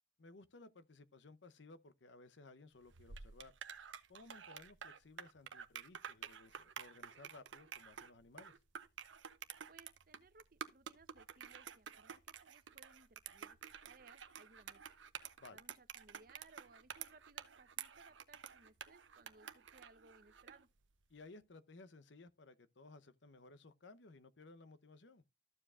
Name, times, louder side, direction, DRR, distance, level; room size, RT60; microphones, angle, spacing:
voice 1, 0.2-3.5 4.1-8.6 15.4-15.6 21.1-25.2, left 3 dB, 70° left, 0.8 m, -58 dB
sound 1, 2.9-20.6, right 8 dB, 85° right, 0.8 m, -51 dB
voice 2, 9.7-13.6 13.8-14.9 15.5-20.7, right 3 dB, 50° right, 0.8 m, -64 dB
13.5 x 7.4 x 2.4 m
head